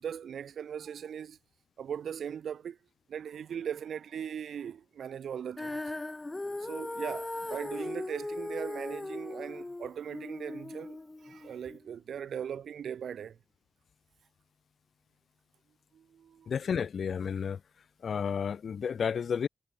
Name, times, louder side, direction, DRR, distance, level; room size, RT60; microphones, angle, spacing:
voice 1, 0.0-1.4 1.8-2.8 3.1-5.8 6.6-13.4 15.9-16.5, right 8 dB, 85° right, 1.3 m, -39 dB
Female singing, 5.6-11.8, left 2 dB, 15° left, 0.6 m, -38 dB
voice 2, 16.5-17.6 18.0-19.5, left 7 dB, 60° left, 0.6 m, -31 dB
wide cardioid pair, 170°, 0 cm